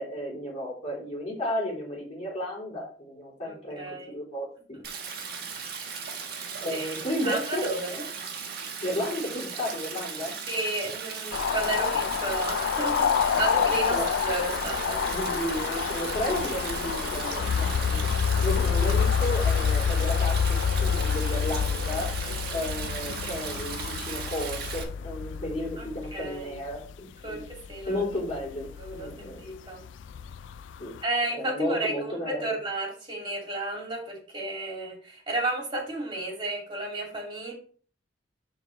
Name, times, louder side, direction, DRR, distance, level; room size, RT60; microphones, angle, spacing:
voice 1, 0.0-4.8 6.6-7.6 8.8-10.3 13.9-14.1 15.1-18.0 18.4-22.1 22.5-27.4 27.9-29.4 30.8-30.9 31.3-32.5, left 1 dB, 35° left, -4 dB, 3.4 m, -33 dB
voice 2, 3.4-4.2 4.7-4.8 6.7-6.9 7.2-8.1 10.5-15.1 21.9-22.6 25.8-26.6 27.2-28.0 28.8-29.8 31.0-37.5, right 2 dB, 25° right, -1 dB, 2.5 m, -33 dB
Stream, 4.8-24.8, right 6 dB, 60° right, 1.3 m, -37 dB
sound 1, 11.3-26.9 27.3-31.0, left 7 dB, 80° left, 0.3 m, -28 dB
10.5 x 3.9 x 3.2 m, 0.43 s
head